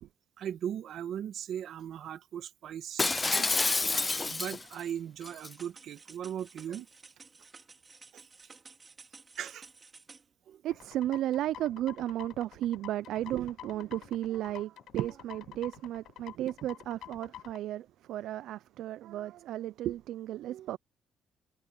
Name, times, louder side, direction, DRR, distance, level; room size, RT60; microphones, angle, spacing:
voice 1, 0.4-3.5 4.0-6.9 8.1-8.2 9.4-9.7 10.5-10.6, right 9 dB, 65° right, 1.3 m, -38 dB
Shatter, 3.0-4.8 5.2-5.5, left 3 dB, 20° left, 0.4 m, -28 dB
sound 1, 5.3-10.3, right 4 dB, 25° right, 2.9 m, -54 dB
voice 2, 10.6-20.8, right 13 dB, 85° right, 0.3 m, -34 dB
sound 2, 10.7-17.6, left 11 dB, 75° left, 5.2 m, -48 dB
cardioid pair, 135°, 0 cm